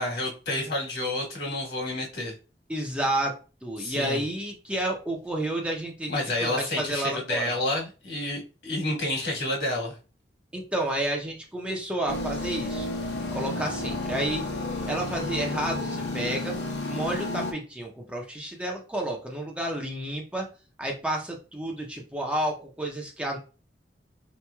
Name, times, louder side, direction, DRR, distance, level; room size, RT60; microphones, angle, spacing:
voice 1, 0.0-2.3 3.8-4.2 6.1-10.0, left 1 dB, 65° left, -1 dB, 1.4 m, -29 dB
voice 2, 2.7-7.5 10.5-12.9 13.3-14.5 14.9-16.6 16.9-20.5 20.8-23.4, right 1 dB, 5° right, 0 dB, 0.5 m, -30 dB
sound 1, 12.1-17.5, left 2 dB, 85° left, 0.9 m, -31 dB
3.9 x 3.0 x 2.2 m, 0.33 s
head